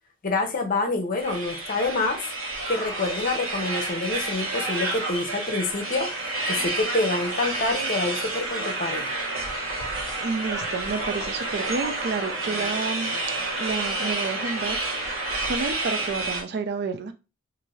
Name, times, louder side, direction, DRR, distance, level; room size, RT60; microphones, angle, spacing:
voice 1, 0.2-2.2 2.7-6.1 6.5-9.1, left 3 dB, 40° left, 4 dB, 0.7 m, -27 dB
sound 1, 1.2-16.4, right 2 dB, 75° right, 1.2 m, -29 dB
voice 2, 10.2-13.1 13.5-17.1, right 4 dB, 50° right, 8 dB, 0.4 m, -30 dB
2.6 x 2.6 x 3.1 m, 0.29 s
head